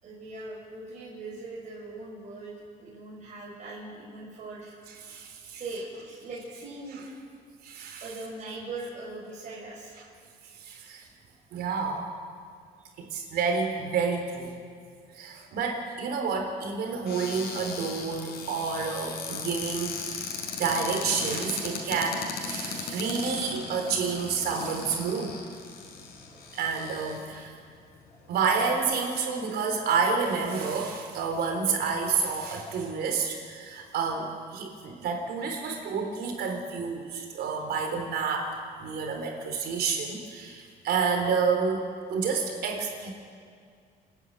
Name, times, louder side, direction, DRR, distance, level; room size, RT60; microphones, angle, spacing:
voice 1, 0.0-4.8 5.5-7.0 8.0-10.0 13.0-13.1 26.3-26.4, right 2 dB, 45° right, -6 dB, 5.8 m, -40 dB
voice 2, 5.0-5.6 7.6-8.1 10.6-11.0 11.5-12.1 13.0-14.5 15.1-20.3 20.6-25.4 26.5-27.5 28.3-43.1, right 5 dB, 70° right, 3 dB, 4.0 m, -29 dB
Cupboard open or close, 17.0-27.4 28.1-28.2 28.4-28.8, left 5 dB, 70° left, 4.4 m, -37 dB
28.5 x 10.5 x 9.0 m, 2.2 s
cardioid pair, 110°, 17 cm